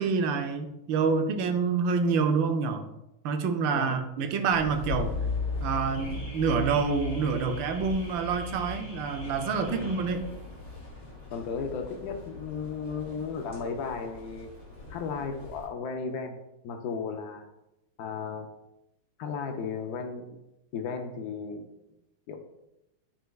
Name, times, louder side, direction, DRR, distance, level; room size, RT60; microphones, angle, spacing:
voice 1, 0.0-2.9 3.2-5.1 5.6-10.2, right 5 dB, 75° right, 6 dB, 1.2 m, -27 dB
Car / Alarm, 4.5-15.7, left 3 dB, 40° left, 2.7 m, -38 dB
voice 2, 11.3-14.5 14.9-16.4 16.6-17.5 18.0-18.5 19.2-20.3 20.7-21.6 22.3-22.4, left 5 dB, 90° left, 4 dB, 0.8 m, -34 dB
9.2 x 4.6 x 2.3 m, 0.89 s
omnidirectional pair, 2.4 m